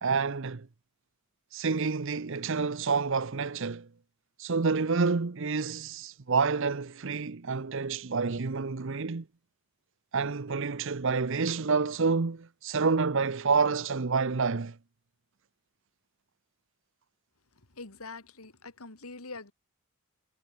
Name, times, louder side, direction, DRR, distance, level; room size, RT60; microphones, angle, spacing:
voice 1, 0.0-0.7 1.5-3.9 4.4-9.3 10.1-14.8, right 4 dB, 60° right, 0.8 m, -28 dB
voice 2, 17.7-19.5, left 3 dB, 85° left, 2.8 m, -44 dB
head